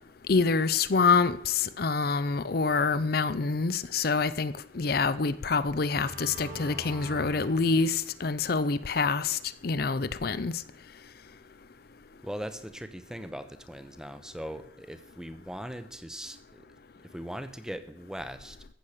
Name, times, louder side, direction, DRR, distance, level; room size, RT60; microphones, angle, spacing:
voice 1, 0.3-10.5, left 4 dB, 50° left, 0.5 m, -26 dB
sound 1, 4.7-4.9 5.6-8.4, right 2 dB, 65° right, 3.2 m, -44 dB
voice 2, 12.2-16.7 17.0-18.6, equal, 5° right, 0.8 m, -40 dB
14.5 x 8.3 x 6.6 m
head